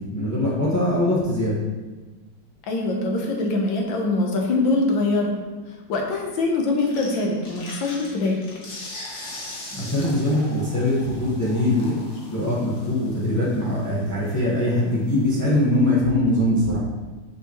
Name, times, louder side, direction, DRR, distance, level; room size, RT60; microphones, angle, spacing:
voice 1, 0.0-1.6 9.7-16.8, left 1 dB, 10° left, -7 dB, 1.0 m, -22 dB
voice 2, 2.7-5.3 5.9-8.4, left 2 dB, 80° left, 1 dB, 1.7 m, -23 dB
sound 1, 6.8-16.0, left 2 dB, 45° left, 1.3 m, -41 dB
6.0 x 5.6 x 3.0 m, 1.3 s
omnidirectional pair, 2.1 m